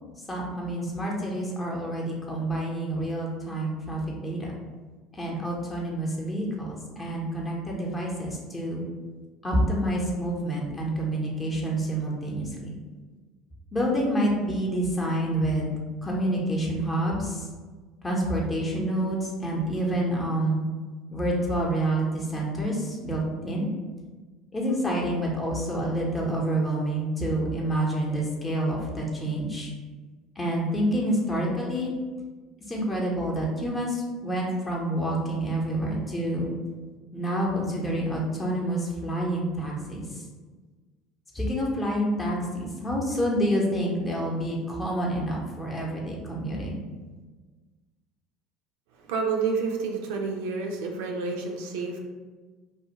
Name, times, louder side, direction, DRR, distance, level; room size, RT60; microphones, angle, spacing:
voice 1, 0.3-4.5 5.1-8.8 9.4-12.7 13.7-15.7 16.0-17.5 18.0-20.6 21.1-23.7 24.5-29.7 30.4-31.9 32.7-36.5 37.1-40.2 41.3-46.8, right 1 dB, 20° left, -2 dB, 0.7 m, -28 dB
voice 2, 49.0-52.0, right 4 dB, 70° right, 1 dB, 0.3 m, -29 dB
2.3 x 2.1 x 2.9 m, 1.4 s
hypercardioid pair, 70°, 0 cm